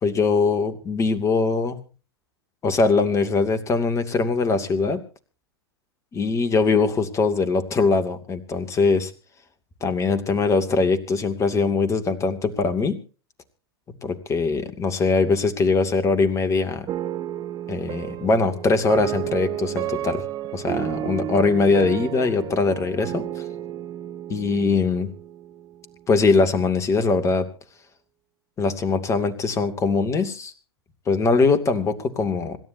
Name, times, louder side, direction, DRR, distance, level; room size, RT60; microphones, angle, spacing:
voice 1, 0.0-1.8 2.6-5.0 6.1-9.1 9.8-13.0 14.0-16.9 17.7-20.2 20.5-23.4 24.3-25.1 26.1-27.5 28.6-30.5 31.1-32.6, left 4 dB, 20° left, 11 dB, 2.5 m, -22 dB
sound 1, 16.9-26.0, right 12 dB, 30° right, 1.1 m, -32 dB
26.5 x 12.5 x 2.8 m, 0.36 s
figure-of-eight pair, 95°, 14 cm